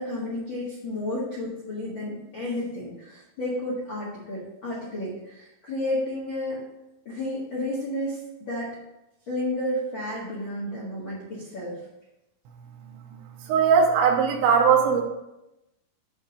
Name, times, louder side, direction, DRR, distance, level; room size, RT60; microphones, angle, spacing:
voice 1, 0.0-6.6 7.0-8.7 9.3-11.8, left 1 dB, 90° left, -7 dB, 1.0 m, -31 dB
voice 2, 13.4-15.0, right 6 dB, 90° right, 2 dB, 3.0 m, -19 dB
8.0 x 3.5 x 6.3 m, 0.94 s
omnidirectional pair, 5.3 m